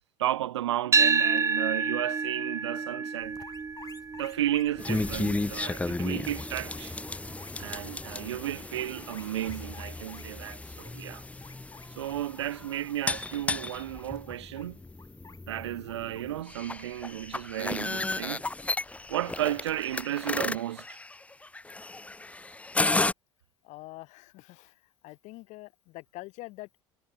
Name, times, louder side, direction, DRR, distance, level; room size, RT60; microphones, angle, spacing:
voice 1, 0.2-3.4 4.2-7.0 7.6-11.2 11.9-14.8 15.5-18.4 19.1-21.0, right 13 dB, 75° right, 1.3 m, -33 dB
sound 1, 0.9-9.1, right 5 dB, 20° right, 0.9 m, -30 dB
sound 2, 3.2-20.0, left 5 dB, 25° left, 4.1 m, -54 dB
sound 3, 4.8-23.1, left 2 dB, 10° left, 0.6 m, -34 dB
voice 2, 23.6-24.7 25.0-26.8, left 20 dB, 55° left, 1.6 m, -45 dB
figure-of-eight pair, 65°, 15 cm